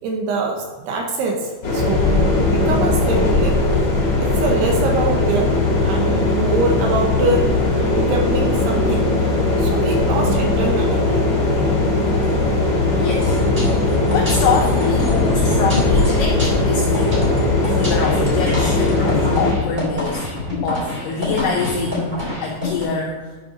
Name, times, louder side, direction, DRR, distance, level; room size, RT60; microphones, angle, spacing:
voice 1, 0.0-3.6 4.2-5.5 5.8-7.5 7.9-9.1 9.6-11.1, right 3 dB, 75° right, 1 dB, 2.5 m, -24 dB
sound 1, 1.6-19.5, left 2 dB, 55° left, 1.2 m, -19 dB
sound 2, 2.3-17.5, right 3 dB, 60° right, 2.9 m, -36 dB
voice 2, 13.0-13.4 14.1-17.3 17.7-20.3 20.6-23.3, left 5 dB, 80° left, 0 dB, 2.4 m, -25 dB
sound 3, 13.2-22.8, left 1 dB, 30° right, 1.1 m, -26 dB
11.5 x 5.8 x 3.9 m, 1.4 s
omnidirectional pair, 5.6 m